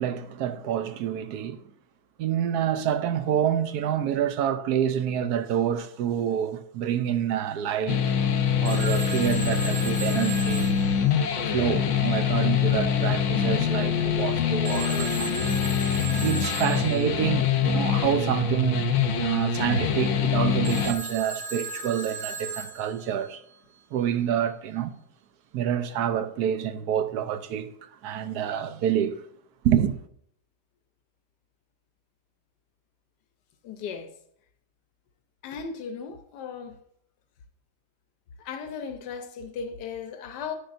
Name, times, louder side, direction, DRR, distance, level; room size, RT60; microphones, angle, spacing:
voice 1, 0.0-1.6 2.2-8.1 8.6-10.8 11.5-15.7 16.2-18.9 19.2-23.4 23.9-25.0 25.5-29.2 29.6-29.9, right 9 dB, 70° right, 1.2 m, -27 dB
sound 1, 7.9-20.9, left 7 dB, 55° left, 0.9 m, -25 dB
Telephone, 8.6-11.7 14.6-17.2 20.6-23.3, right 4 dB, 55° right, 3.0 m, -36 dB
voice 2, 33.6-34.1 35.4-36.8 38.4-40.6, left 6 dB, 85° left, 1.4 m, -36 dB
10.5 x 10.0 x 2.6 m
omnidirectional pair, 1.8 m